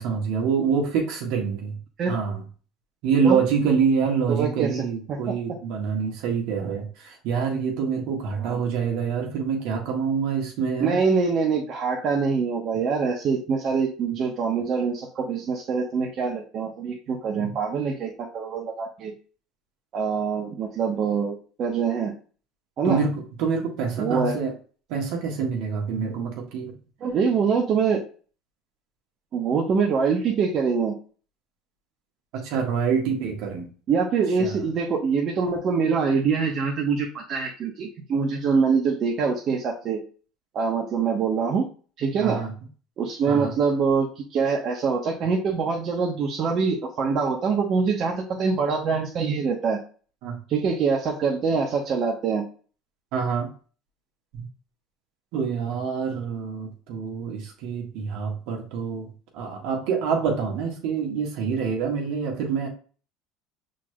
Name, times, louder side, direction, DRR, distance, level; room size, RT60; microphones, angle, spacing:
voice 1, 0.0-1.8 2.1-2.4 3.0-11.0 17.4-17.5 22.8-24.5 24.9-26.7 32.3-33.7 34.4-34.6 42.2-42.5 43.3-43.5 50.2-50.4 53.1-53.5 54.3-54.5 55.3-62.7, right 6 dB, 70° right, 2 dB, 1.5 m, -26 dB
voice 2, 4.3-5.2 8.4-8.6 10.8-19.1 19.9-22.1 22.8-23.0 24.0-24.4 27.0-28.0 29.3-30.9 33.9-40.0 40.5-41.6 42.0-42.4 43.0-49.8 50.5-52.5, right 5 dB, 50° right, -1 dB, 1.0 m, -24 dB
6.0 x 3.9 x 2.3 m, 0.39 s
hypercardioid pair, 75°, 0 cm